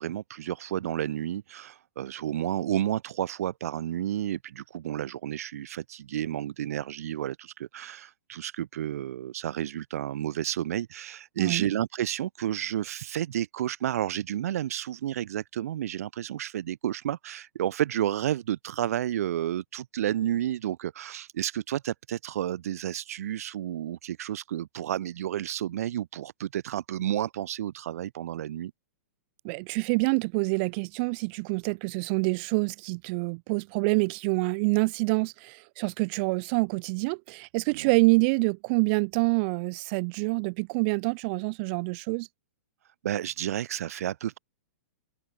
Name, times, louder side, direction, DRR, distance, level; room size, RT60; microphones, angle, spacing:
voice 1, 0.0-28.7 37.7-37.9 43.0-44.4, right 11 dB, 70° right, 1.2 m, -31 dB
voice 2, 29.4-42.3, right 31 dB, 45° right, 1.4 m, -26 dB
hypercardioid pair, 130°, 8 cm